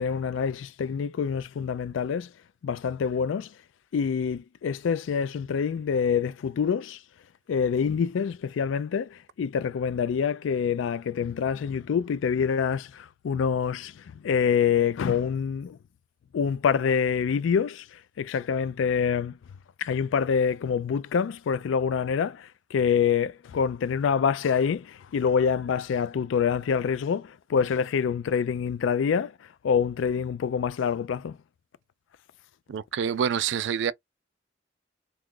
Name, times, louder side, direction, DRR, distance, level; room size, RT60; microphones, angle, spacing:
voice 1, 0.0-2.3 2.6-3.5 3.9-7.0 7.5-15.8 16.3-19.4 19.8-29.3 29.6-31.4, left 6 dB, 80° left, 0.3 m, -26 dB
voice 2, 32.7-33.9, right 7 dB, 70° right, 0.3 m, -27 dB
2.9 x 2.3 x 3.7 m
head